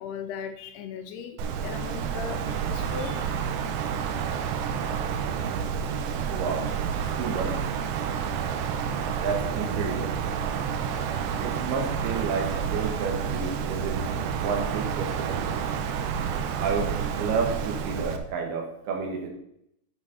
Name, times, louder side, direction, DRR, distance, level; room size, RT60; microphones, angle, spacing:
voice 1, 0.0-3.3, left 7 dB, 80° left, 7 dB, 2.7 m, -38 dB
Wind, 1.4-18.2, right 7 dB, 85° right, 3.0 m, -29 dB
voice 2, 6.3-6.7 7.2-7.6 9.2-10.2 11.4-14.0 14.4-15.6 16.6-19.3, right 5 dB, 70° right, 2 dB, 3.3 m, -31 dB
10.5 x 6.8 x 4.1 m, 0.75 s
omnidirectional pair, 5.0 m